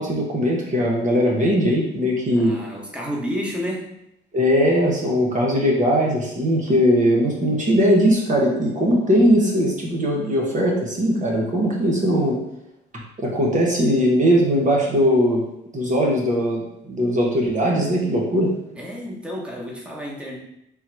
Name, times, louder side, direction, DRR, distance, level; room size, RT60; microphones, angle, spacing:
voice 1, 0.0-2.5 4.3-12.4 13.2-15.4 15.7-18.5, equal, 40° right, -2 dB, 1.0 m, -19 dB
voice 2, 2.3-3.9 18.8-20.4, equal, 5° right, -3 dB, 1.2 m, -30 dB
3.6 x 3.0 x 4.6 m, 0.80 s
cardioid pair, 90°, 20 cm